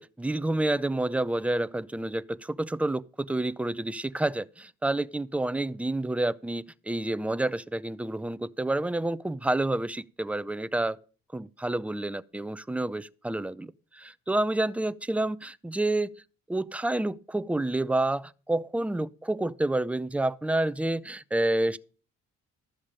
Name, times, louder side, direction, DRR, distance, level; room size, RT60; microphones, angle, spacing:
voice 1, 0.0-11.0 11.3-16.1 16.5-21.8, right 2 dB, 5° right, 0.5 m, -29 dB
13.0 x 7.1 x 5.0 m
cardioid pair, 90°, 30 cm